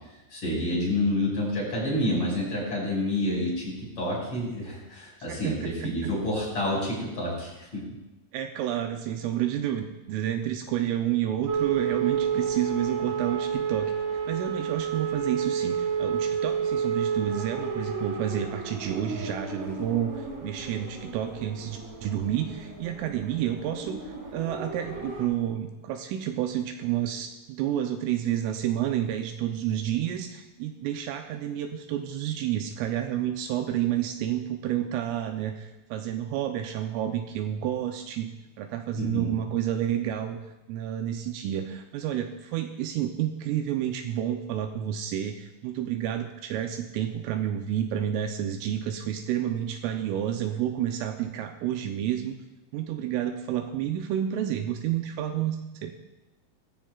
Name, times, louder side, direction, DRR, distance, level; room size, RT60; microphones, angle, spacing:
voice 1, 0.0-7.9 39.0-39.3, left 1 dB, 25° left, -5 dB, 6.1 m, -29 dB
voice 2, 5.3-6.1 8.3-38.3 38.6-40.4 40.7-52.4 52.7-55.9, right 11 dB, 80° right, 5 dB, 3.1 m, -30 dB
sound 1, 11.5-25.3, right 6 dB, 45° right, 3.5 m, -31 dB
20.0 x 15.0 x 2.4 m, 1.0 s
omnidirectional pair, 6.0 m